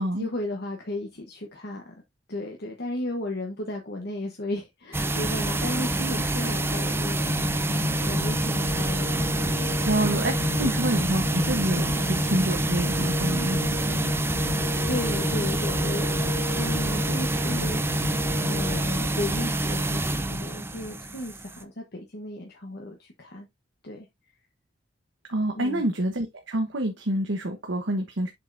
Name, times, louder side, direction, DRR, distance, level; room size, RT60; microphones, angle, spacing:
voice 1, 0.2-1.9 2.3-7.3 8.0-9.2 10.6-10.7 11.9-12.1 14.9-18.2 18.4-23.5 23.8-24.1 25.5-25.8, left 1 dB, 60° left, 1.2 m, -34 dB
sound 1, 4.9-21.6, right 1 dB, 15° right, 0.6 m, -27 dB
sound 2, 7.2-18.8, left 3 dB, 40° left, 2.8 m, -33 dB
voice 2, 9.8-14.2 25.3-28.3, right 1 dB, 80° right, 1.1 m, -28 dB
7.4 x 5.3 x 2.6 m
head